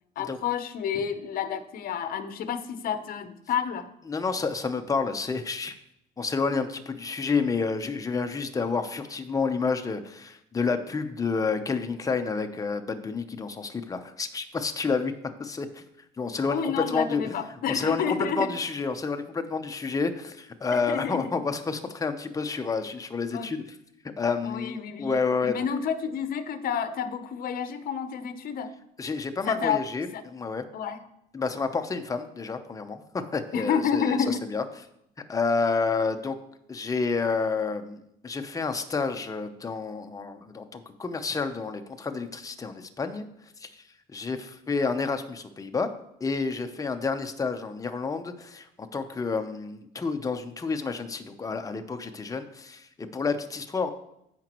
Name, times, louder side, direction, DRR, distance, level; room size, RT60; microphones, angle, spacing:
voice 1, 0.2-3.9 16.5-18.5 20.7-21.4 23.3-23.5 24.4-28.7 29.5-29.8 30.1-30.2 30.7-31.0 33.5-34.4, left 7 dB, 60° left, 10 dB, 0.9 m, -29 dB
voice 2, 4.1-5.7 6.2-15.1 15.4-15.8 16.2-17.4 17.7-23.6 24.2-25.6 29.0-30.6 31.3-34.6 35.3-36.4 36.7-43.3 43.6-43.7 44.1-45.9 46.2-53.9, left 4 dB, 20° left, 7 dB, 0.8 m, -29 dB
15.0 x 5.1 x 3.0 m, 0.78 s
cardioid pair, 110°, 17 cm